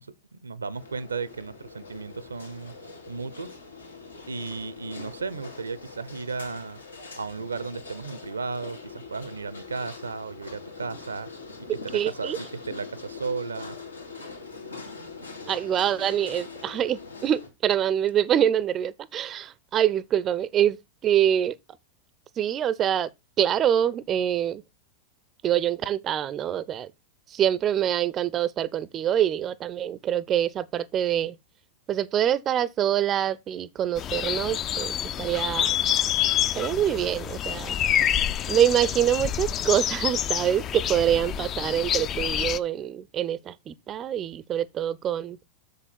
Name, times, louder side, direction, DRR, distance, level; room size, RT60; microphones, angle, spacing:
voice 1, 0.0-2.7 3.1-3.6 4.3-6.8 7.1-11.3 11.7-13.8, right 4 dB, 75° right, 0.6 m, -35 dB
sound 1, 0.7-17.5, left 4 dB, 75° left, 1.9 m, -42 dB
voice 2, 11.9-12.4 15.5-20.8 21.0-21.6 22.4-23.1 23.4-24.6 25.4-26.9 27.3-31.4 31.9-35.7 36.5-37.8 38.5-45.4, right 10 dB, 30° right, 0.5 m, -25 dB
sound 2, 33.9-42.6, left 10 dB, 30° left, 0.5 m, -27 dB
7.1 x 6.6 x 4.2 m
figure-of-eight pair, 90°, 0 cm